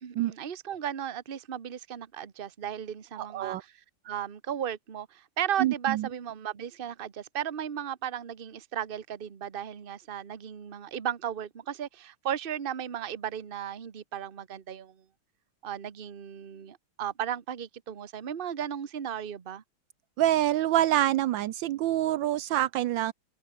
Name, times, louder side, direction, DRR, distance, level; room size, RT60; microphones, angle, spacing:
voice 1, 0.0-3.6 4.0-14.9 15.6-19.6, right 9 dB, 35° right, 1.1 m, -35 dB
voice 2, 3.2-3.6 5.6-6.1 20.2-23.1, right 13 dB, 75° right, 1.3 m, -26 dB
omnidirectional pair, 2.2 m